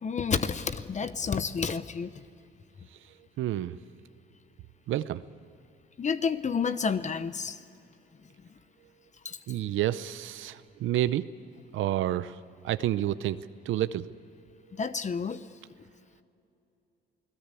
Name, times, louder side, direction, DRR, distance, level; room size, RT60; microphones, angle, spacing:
voice 1, 0.0-2.1 6.0-7.6 9.2-9.4 14.7-15.5, left 5 dB, 35° left, 12 dB, 0.9 m, -30 dB
voice 2, 3.4-3.8 4.9-5.2 9.5-11.3 11.7-12.4 12.6-14.1, right 13 dB, 80° right, 13 dB, 0.7 m, -29 dB
28.5 x 18.0 x 8.4 m, 2.7 s
cardioid pair, 90°, 20 cm